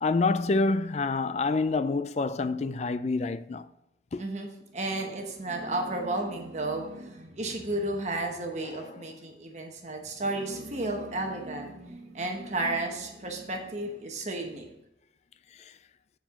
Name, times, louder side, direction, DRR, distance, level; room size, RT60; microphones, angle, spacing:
voice 1, 0.0-3.7 4.1-4.2 8.7-8.9, left 3 dB, 35° left, 0.3 m, -27 dB
voice 2, 4.2-14.7, right 2 dB, 40° right, 1.0 m, -33 dB
7.8 x 4.6 x 5.7 m
head